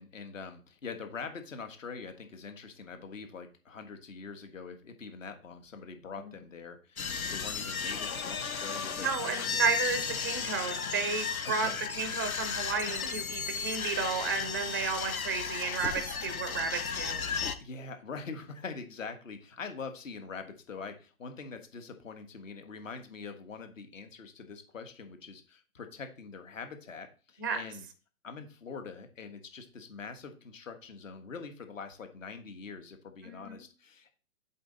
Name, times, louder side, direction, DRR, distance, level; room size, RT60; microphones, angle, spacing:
voice 1, 0.0-9.1 11.4-11.8 17.6-27.8 28.2-34.1, left 5 dB, 65° left, 7 dB, 1.5 m, -44 dB
sound 1, 7.0-17.5, left 6 dB, 80° left, 0.9 m, -34 dB
voice 2, 9.0-17.3 27.4-27.6 33.2-33.5, right 5 dB, 15° right, 10 dB, 0.3 m, -33 dB
Cough, 9.4-9.7 10.1-10.4 10.7-11.1 12.9-13.3 13.9-14.6, left 6 dB, 25° left, 1.0 m, -48 dB
7.6 x 4.3 x 3.9 m, 0.35 s
figure-of-eight pair, 130°, 42 cm